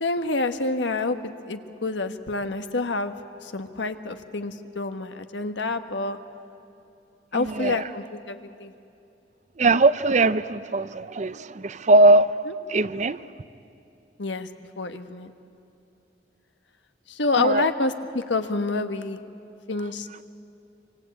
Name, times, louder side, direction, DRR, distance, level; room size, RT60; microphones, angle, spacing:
voice 1, 0.0-3.1 3.4-6.2 7.3-8.7 12.5-12.6 14.2-14.5 14.8-15.3 17.1-19.2 19.7-20.1, left 3 dB, 90° left, 1.4 m, -28 dB
voice 2, 7.3-7.8 9.6-11.4 11.6-12.3 12.7-13.2 17.4-17.6, right 2 dB, 40° right, 0.6 m, -19 dB
26.0 x 25.5 x 8.6 m
head